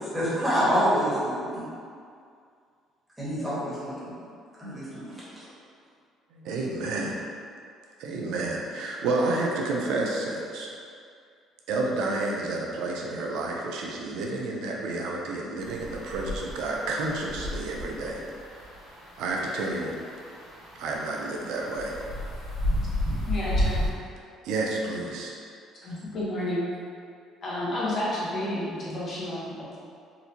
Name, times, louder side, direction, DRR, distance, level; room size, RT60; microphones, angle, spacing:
voice 1, 0.0-1.6 3.2-4.1 4.6-5.5, equal, 5° right, -11 dB, 1.4 m, -27 dB
voice 2, 6.3-7.2 8.0-10.7 11.7-18.2 19.2-20.0 20.8-22.0 24.4-25.3, right 2 dB, 80° right, -1 dB, 0.4 m, -30 dB
sound 1, 15.6-23.9, left 1 dB, 85° left, 1.2 m, -32 dB
voice 3, 23.3-23.8 25.8-26.6 27.4-29.8, left 1 dB, 45° left, -8 dB, 1.0 m, -31 dB
3.9 x 2.5 x 2.8 m, 2.3 s
cardioid pair, 120°, 0 cm